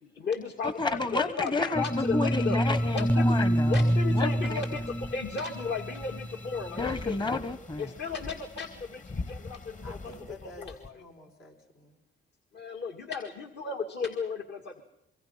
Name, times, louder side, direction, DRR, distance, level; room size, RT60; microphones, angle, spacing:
voice 1, 0.0-2.6 2.9-3.4 3.7-4.8 5.1-7.1 7.8-9.9 10.6-10.9 12.5-14.8, left 4 dB, 60° left, 3 dB, 2.1 m, -34 dB
voice 2, 0.6-4.6 6.8-7.9, left 3 dB, 25° left, 12 dB, 1.1 m, -31 dB
sound 1, 1.7-6.9, equal, 5° left, 0.7 m, -27 dB
sound 2, 2.6-10.9, left 3 dB, 40° left, 1.8 m, -45 dB
voice 3, 9.8-12.0, left 1 dB, 75° left, 3 dB, 5.0 m, -49 dB
25.5 x 23.5 x 5.6 m, 0.87 s
cardioid pair, 90°, 20 cm